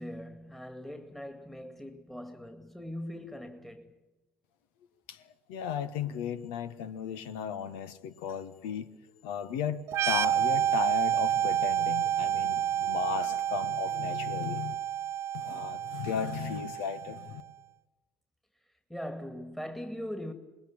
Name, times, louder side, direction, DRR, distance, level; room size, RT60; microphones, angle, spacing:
voice 1, 0.0-3.9 18.9-20.3, equal, 5° left, 2.2 m, -41 dB
voice 2, 5.5-8.9 9.2-14.7 15.3-17.4, left 8 dB, 70° left, 1.4 m, -35 dB
sound 1, 9.9-17.4, right 11 dB, 50° right, 0.9 m, -29 dB
25.5 x 21.0 x 8.7 m
hypercardioid pair, 60°, 6 cm